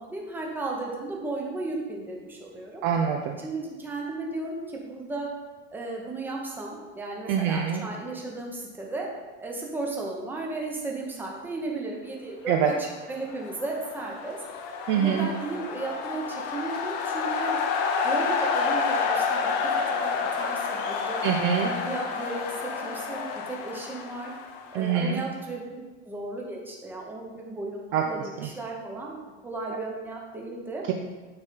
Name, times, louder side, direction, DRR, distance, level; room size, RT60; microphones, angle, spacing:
voice 1, 0.0-2.8 3.4-5.3 5.7-9.1 9.4-14.4 14.9-17.6 18.0-19.7 20.0-21.2 21.7-24.3 24.7-29.2 29.4-30.8, right 2 dB, 5° right, -1 dB, 0.7 m, -35 dB
voice 2, 2.8-3.4 7.3-7.8 12.5-12.7 14.9-15.3 21.2-21.7 24.7-25.2 27.9-28.1 28.4-28.5, right 8 dB, 40° right, 3 dB, 0.4 m, -24 dB
sound 1, 13.1-25.1, left 5 dB, 60° left, 0.7 m, -29 dB
8.8 x 3.9 x 3.8 m, 1.2 s
cardioid pair, 170°, 31 cm